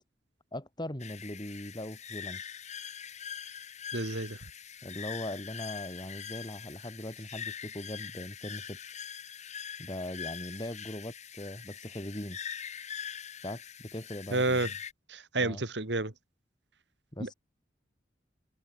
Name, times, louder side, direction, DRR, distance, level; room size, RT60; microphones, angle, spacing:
voice 1, 0.5-2.6 4.8-8.8 9.8-12.4 13.4-14.7 15.4-15.6 17.1-17.3, left 1 dB, 25° left, 5.9 m, -40 dB
sound 1, 1.0-14.9, left 8 dB, 40° left, 2.4 m, -43 dB
voice 2, 3.9-4.4 14.3-14.7 15.1-16.1 17.2-17.3, right 2 dB, 70° right, 2.6 m, -30 dB
head